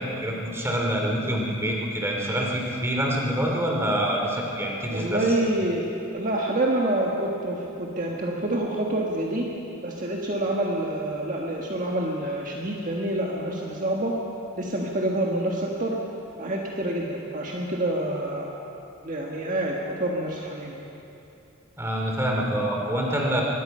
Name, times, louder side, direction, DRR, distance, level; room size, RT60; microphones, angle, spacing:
voice 1, 0.0-5.2 21.8-23.4, equal, 10° right, -1 dB, 2.8 m, -26 dB
voice 2, 4.9-5.9 6.1-9.5 9.8-14.1 14.6-16.0 16.4-18.5 19.0-20.8, right 1 dB, 40° right, -2 dB, 1.6 m, -27 dB
23.5 x 20.0 x 5.6 m, 2.9 s
head